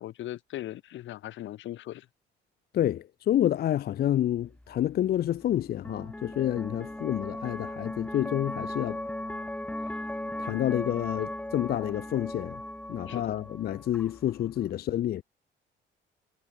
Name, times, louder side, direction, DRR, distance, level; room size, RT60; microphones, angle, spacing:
voice 1, 0.0-2.1 13.1-13.4, left 13 dB, 75° left, 0.8 m, -39 dB
voice 2, 2.7-9.0 10.4-12.6 12.9-15.2, left 12 dB, 50° left, 0.4 m, -28 dB
sound 1, 4.4-14.7, left 1 dB, 5° left, 1.2 m, -38 dB
cardioid pair, 90°, 20 cm